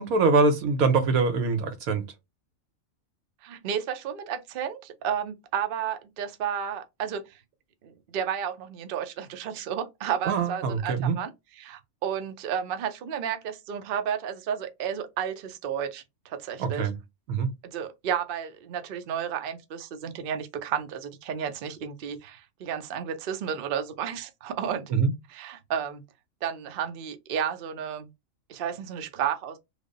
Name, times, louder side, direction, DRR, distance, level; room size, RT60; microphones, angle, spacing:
voice 1, 0.0-2.0 10.3-11.2 16.6-17.0 17.3-17.5 24.9-25.1, right 4 dB, 85° right, 1.2 m, -23 dB
voice 2, 3.4-7.4 7.8-11.3 11.6-16.9 17.6-24.9 25.3-26.0 26.4-28.1 28.5-29.6, right 8 dB, 55° right, 0.6 m, -32 dB
3.3 x 2.1 x 3.7 m
omnidirectional pair, 1.4 m